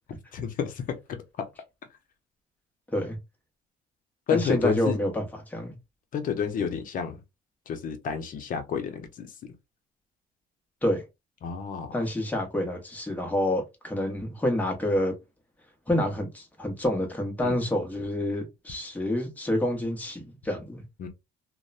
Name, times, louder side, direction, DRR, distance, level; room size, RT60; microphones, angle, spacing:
voice 1, 0.3-1.5 4.3-5.0 6.1-7.2 7.7-9.5 11.4-11.9 17.4-17.5 21.0-21.1, left 7 dB, 55° left, 0.7 m, -30 dB
voice 2, 4.3-5.7 10.8-11.0 11.9-15.2 15.9-20.8, left 1 dB, 10° left, 0.9 m, -28 dB
2.9 x 2.1 x 2.4 m
cardioid pair, 110°, 17 cm